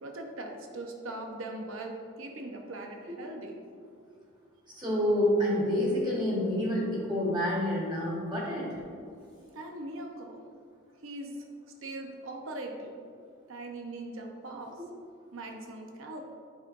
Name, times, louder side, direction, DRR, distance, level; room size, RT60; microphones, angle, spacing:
voice 1, 0.0-3.6 9.5-10.4 11.0-11.5 11.8-13.0 13.5-14.8 15.3-16.2, right 2 dB, 70° right, 2 dB, 0.7 m, -40 dB
voice 2, 4.7-8.8, left 1 dB, 20° right, -4 dB, 1.3 m, -28 dB
7.9 x 5.3 x 2.5 m, 2.3 s
head